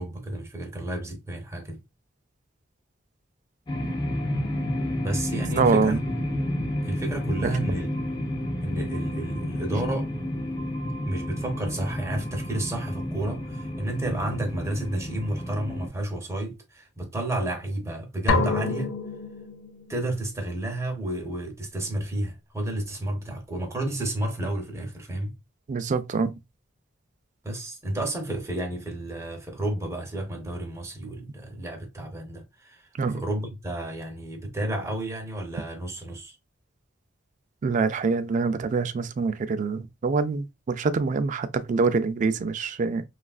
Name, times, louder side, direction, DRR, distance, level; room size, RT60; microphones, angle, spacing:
voice 1, 0.0-1.8 5.0-6.3 6.9-7.9 8.6-10.1 11.1-18.9 19.9-25.4 27.4-36.4, right 1 dB, 15° right, 0.7 m, -31 dB
Electrical server room, 3.7-15.9, left 1 dB, 25° left, 0.6 m, -30 dB
voice 2, 5.5-6.0 7.4-7.5 25.7-26.3 33.0-33.2 37.6-43.0, right 4 dB, 40° right, 0.3 m, -25 dB
sound 1, 18.3-20.1, left 4 dB, 80° left, 0.4 m, -27 dB
3.1 x 2.4 x 2.3 m
head